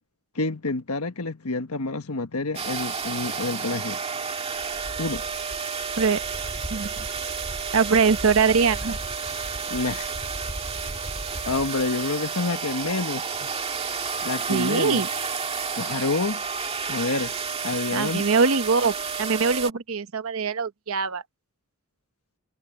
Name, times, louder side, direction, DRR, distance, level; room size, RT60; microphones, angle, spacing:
voice 1, 0.3-4.0 5.0-5.2 9.7-10.1 11.5-13.5 14.2-15.0 15.8-16.4 16.9-17.3 17.6-18.2, left 3 dB, 90° left, 1.5 m, -28 dB
sound 1, 2.5-19.7, right 5 dB, 25° right, 2.2 m, -31 dB
voice 2, 7.7-9.0 14.5-15.1 17.9-21.2, right 5 dB, 75° right, 0.9 m, -22 dB
head